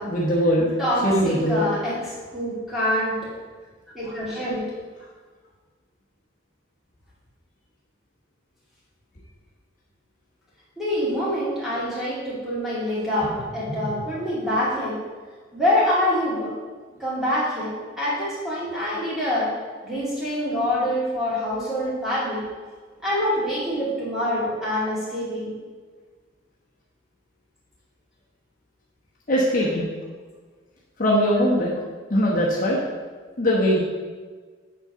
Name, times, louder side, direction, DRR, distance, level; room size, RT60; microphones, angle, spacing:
voice 1, 0.0-0.7 1.0-1.6 13.7-13.9 29.3-29.9 31.0-31.7 32.1-32.8 33.4-33.8, equal, 40° left, -5 dB, 1.2 m, -21 dB
voice 2, 0.8-3.3 3.9-4.6 10.8-15.0 15.5-16.5 17.0-19.5 19.8-22.4 23.0-25.5, left 1 dB, ahead, -9 dB, 2.5 m, -25 dB
8.1 x 3.9 x 6.7 m, 1.5 s
head